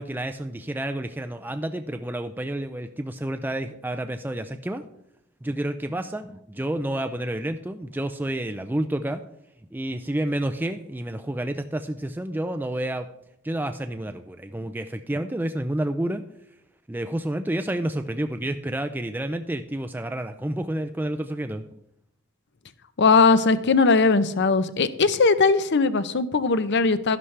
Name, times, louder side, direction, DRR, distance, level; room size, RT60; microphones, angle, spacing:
voice 1, 0.0-4.9 5.4-9.2 9.7-13.1 13.4-16.2 16.9-21.6, right 1 dB, 10° right, 7 dB, 0.4 m, -29 dB
voice 2, 23.0-27.2, left 4 dB, 50° left, 13 dB, 0.7 m, -19 dB
12.5 x 11.0 x 3.3 m, 0.78 s
head